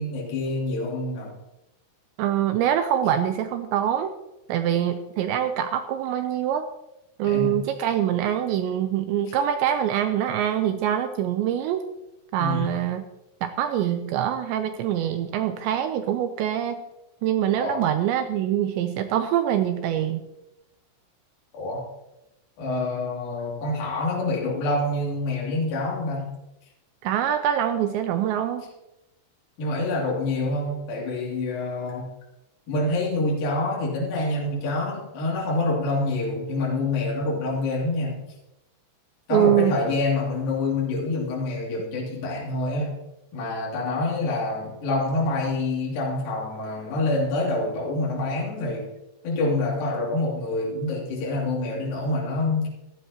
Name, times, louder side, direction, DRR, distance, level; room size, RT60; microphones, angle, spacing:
voice 1, 0.0-1.4 7.2-7.6 9.3-9.4 12.4-12.8 17.5-17.9 21.5-21.9 22.6-26.4 29.6-32.1 32.7-38.2 39.3-43.0 43.3-48.9 49.2-52.7, left 2 dB, 50° left, -4 dB, 4.1 m, -27 dB
voice 2, 2.2-4.1 4.5-6.7 7.2-11.8 12.3-13.0 13.4-16.8 17.2-20.3 27.0-28.7 39.3-39.8, right 10 dB, 85° right, 8 dB, 2.6 m, -24 dB
16.0 x 15.0 x 2.9 m, 0.93 s
omnidirectional pair, 5.8 m